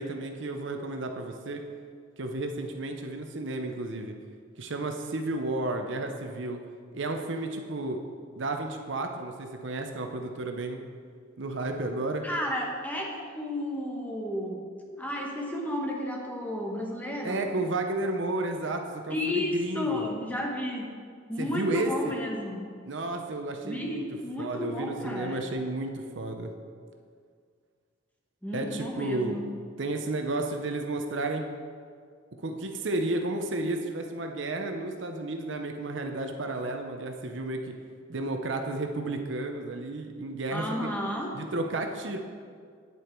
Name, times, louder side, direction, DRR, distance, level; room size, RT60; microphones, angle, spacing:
voice 1, 0.0-1.6 2.2-4.1 4.6-6.6 6.9-8.0 8.4-10.8 11.4-12.3 17.2-20.1 21.4-22.1 22.9-24.0 24.4-26.5 28.5-29.4 29.8-31.5 32.4-37.7 38.1-40.7 41.3-42.2, right 2 dB, 65° right, 4 dB, 0.8 m, -32 dB
voice 2, 12.2-14.6 15.0-17.5 19.1-20.9 21.3-22.6 23.6-25.4 28.4-29.4 40.5-41.3, left 1 dB, 10° left, -1 dB, 1.1 m, -32 dB
9.4 x 8.2 x 4.5 m, 2.1 s
head